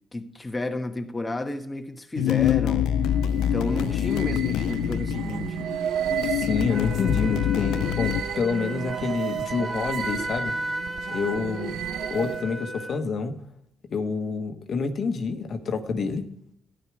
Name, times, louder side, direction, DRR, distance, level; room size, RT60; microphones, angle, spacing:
voice 1, 0.1-2.9 3.3-5.7, left 2 dB, 15° left, 1.1 m, -31 dB
sound 1, 2.2-8.2, left 11 dB, 85° left, 0.4 m, -25 dB
sound 2, 2.9-12.6, right 10 dB, 75° right, 0.5 m, -33 dB
voice 2, 6.4-10.6 11.1-11.8 12.1-13.4 13.9-16.2, left 5 dB, 55° left, 1.3 m, -28 dB
Wind instrument woodwind instrument, 6.7-13.1, right 1 dB, 10° right, 1.2 m, -35 dB
12.5 x 10.0 x 4.8 m
cardioid pair, 90°, 0 cm